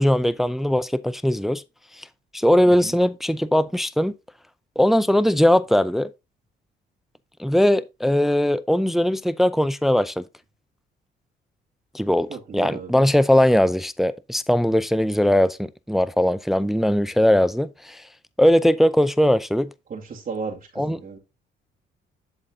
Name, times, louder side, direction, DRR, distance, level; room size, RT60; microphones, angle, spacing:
voice 1, 0.0-1.6 2.0-2.1 2.3-4.1 4.8-6.1 7.4-10.3 11.9-18.0 18.4-19.7 20.8-21.0, left 1 dB, ahead, 0.5 m, -20 dB
voice 2, 2.6-2.9 12.3-13.1 19.9-21.2, right 5 dB, 45° right, 2.2 m, -34 dB
11.0 x 4.1 x 3.7 m
cardioid pair, 90°, 20 cm